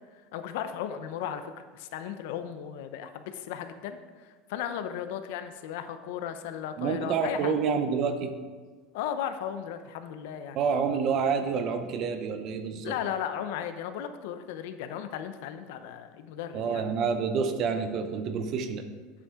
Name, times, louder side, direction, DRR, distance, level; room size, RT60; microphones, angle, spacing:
voice 1, 0.3-7.5 8.9-10.6 12.8-16.8, left 9 dB, 70° left, 9 dB, 0.7 m, -36 dB
voice 2, 6.8-8.3 10.5-13.0 16.5-18.9, right 6 dB, 35° right, 8 dB, 0.7 m, -28 dB
9.8 x 8.5 x 3.7 m, 1.4 s
cardioid pair, 175°, 0 cm